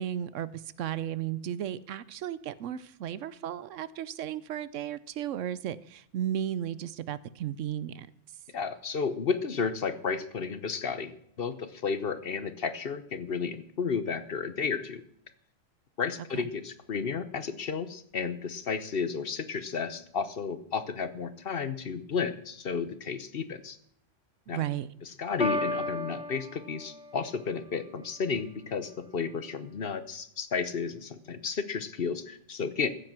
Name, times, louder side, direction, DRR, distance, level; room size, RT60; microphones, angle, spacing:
voice 1, 0.0-8.1 16.3-16.5 24.5-24.9, right 10 dB, 80° right, 17 dB, 1.0 m, -34 dB
voice 2, 8.5-15.0 16.0-23.8 24.5-24.6 25.2-32.9, left 5 dB, 55° left, 12 dB, 1.1 m, -32 dB
Piano, 25.4-27.4, equal, 5° right, 1.1 m, -33 dB
15.0 x 7.7 x 6.0 m, 0.69 s
omnidirectional pair, 1.3 m